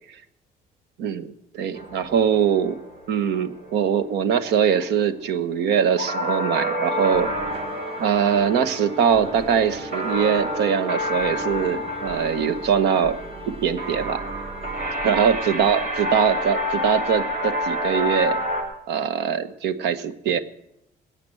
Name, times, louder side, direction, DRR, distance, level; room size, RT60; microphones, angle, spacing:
voice 1, 1.0-2.8 3.1-7.3 8.0-13.2 13.5-14.2 15.0-18.4 18.9-20.4, right 7 dB, 85° right, 13 dB, 1.2 m, -22 dB
sound 1, 1.7-18.6, equal, 55° right, 7.6 m, -29 dB
sound 2, 6.8-15.0, right 2 dB, 35° right, 3.2 m, -38 dB
20.0 x 8.4 x 7.7 m, 0.82 s
cardioid pair, 110°, 17 cm